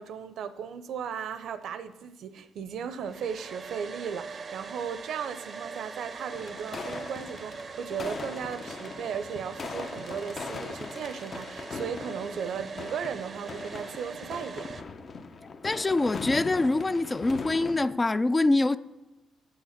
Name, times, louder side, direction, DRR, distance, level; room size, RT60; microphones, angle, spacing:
voice 1, 0.0-14.7, right 7 dB, 70° right, 0.7 m, -36 dB
Domestic sounds home sounds, 3.0-14.8, right 5 dB, 40° right, 0.6 m, -42 dB
sound 1, 6.3-17.9, left 4 dB, 45° left, 0.8 m, -40 dB
voice 2, 15.6-18.8, left 2 dB, 20° left, 0.4 m, -24 dB
8.6 x 8.0 x 6.6 m
cardioid pair, 90°, 0 cm